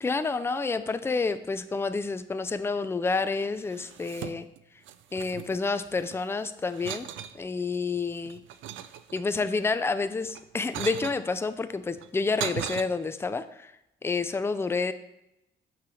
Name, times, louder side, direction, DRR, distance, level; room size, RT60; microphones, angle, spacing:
voice 1, 0.0-4.4 5.1-7.1 7.4-8.4 9.1-13.7 14.0-14.9, left 4 dB, 10° left, 11 dB, 0.4 m, -29 dB
sound 1, 3.6-4.6 4.9-6.2 6.7-7.4 8.0-9.5 10.2-11.2 12.0-12.8, right 11 dB, 75° right, 0.4 m, -38 dB
6.0 x 3.2 x 5.7 m, 0.87 s
cardioid pair, 90°, 20 cm